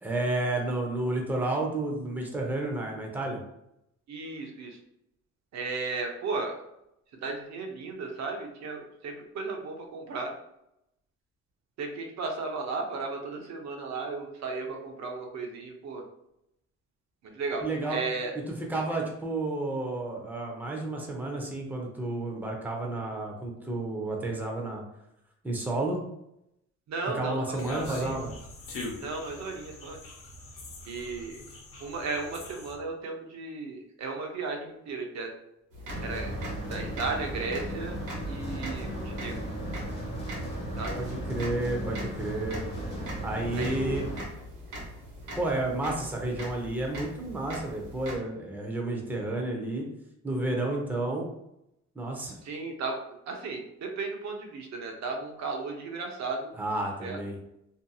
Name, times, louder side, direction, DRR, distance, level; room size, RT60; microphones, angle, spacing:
voice 1, 0.0-3.4 17.6-18.0 18.5-24.8 25.4-26.0 27.1-28.3 41.0-42.6 43.2-44.1 45.4-49.9 50.2-51.3 52.0-52.3 56.5-57.4, right 2 dB, 5° right, 0 dB, 0.6 m, -31 dB
voice 2, 4.1-4.8 5.5-6.5 7.2-10.3 11.8-16.0 17.3-18.3 26.9-28.2 29.0-30.0 30.9-31.4 31.8-35.3 36.0-36.3 36.7-38.0 38.3-39.4 40.8-41.0 43.5-44.0 52.4-53.0 53.3-56.5 57.0-57.2, right 3 dB, 65° right, 2 dB, 0.6 m, -35 dB
sound 1, 27.6-32.8, left 2 dB, 50° left, 0.7 m, -42 dB
sound 2, 35.7-48.2, equal, 80° right, 1.0 m, -42 dB
sound 3, 35.9-44.2, right 1 dB, 20° left, 1.1 m, -36 dB
2.6 x 2.6 x 2.3 m, 0.81 s
cardioid pair, 90°, 30 cm